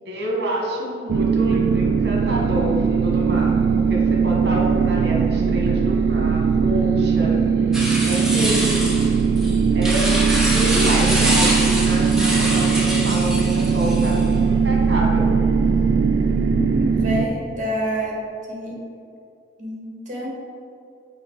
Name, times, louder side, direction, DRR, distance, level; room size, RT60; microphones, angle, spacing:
voice 1, 0.1-7.3 8.0-9.2 9.7-10.2 10.5-15.3, equal, 65° right, -2 dB, 1.4 m, -28 dB
sound 1, 1.1-17.3, right 5 dB, 90° right, 0.3 m, -19 dB
sound 2, 7.7-14.3, right 1 dB, 5° right, 1.0 m, -25 dB
voice 2, 16.3-18.2 18.5-18.8 19.6-20.3, equal, 45° right, -3 dB, 1.6 m, -28 dB
6.4 x 4.6 x 4.6 m, 2.6 s
head